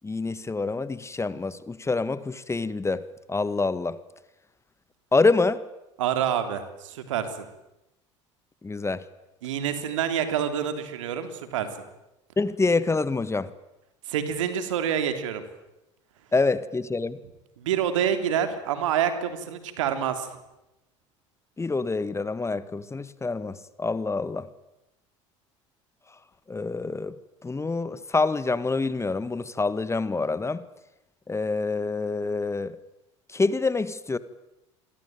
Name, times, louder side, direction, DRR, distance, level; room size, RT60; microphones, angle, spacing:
voice 1, 0.0-3.0 3.3-4.0 5.1-5.6 8.6-9.0 12.4-13.5 16.3-17.2 21.6-24.5 26.5-27.1 27.4-30.6 31.3-32.7 33.3-34.2, left 3 dB, 15° left, 16 dB, 1.6 m, -26 dB
voice 2, 6.0-7.3 9.4-11.7 14.1-15.4 17.6-20.3, right 9 dB, 75° right, 9 dB, 3.5 m, -27 dB
28.0 x 22.5 x 9.1 m, 0.94 s
hypercardioid pair, 70°, 16 cm